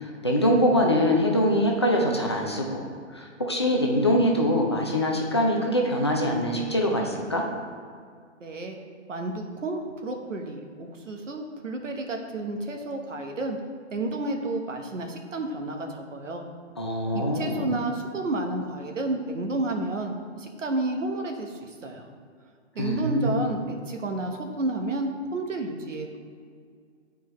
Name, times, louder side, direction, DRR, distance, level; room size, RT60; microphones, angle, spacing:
voice 1, 0.0-2.9 3.1-7.4 16.8-17.7 22.8-23.3, equal, 25° left, 0 dB, 0.4 m, -23 dB
voice 2, 8.4-8.8 9.1-13.6 13.9-16.4 17.1-22.0 22.7-26.2, right 2 dB, 90° right, 3 dB, 1.1 m, -31 dB
9.3 x 4.5 x 3.1 m, 2.1 s
hypercardioid pair, 155°, 36 cm